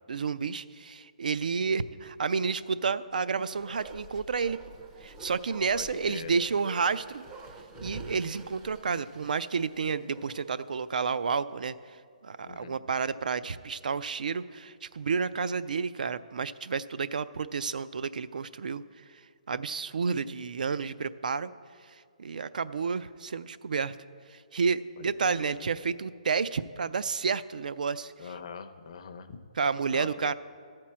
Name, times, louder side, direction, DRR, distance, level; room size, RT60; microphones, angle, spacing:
voice 1, 0.1-4.6 5.0-7.2 7.8-12.0 12.2-18.8 19.5-21.5 21.9-24.0 24.3-28.1 29.6-30.3, right 5 dB, 80° right, 14 dB, 0.3 m, -30 dB
Bark, 3.0-10.6 10.9-11.0, right 2 dB, 15° right, 0.4 m, -48 dB
voice 2, 5.7-6.3 12.4-12.8 25.0-25.7 28.2-29.4 29.9-30.3, left 6 dB, 45° left, 8 dB, 0.5 m, -43 dB
12.5 x 4.5 x 7.3 m, 2.1 s
hypercardioid pair, 170°, 4 cm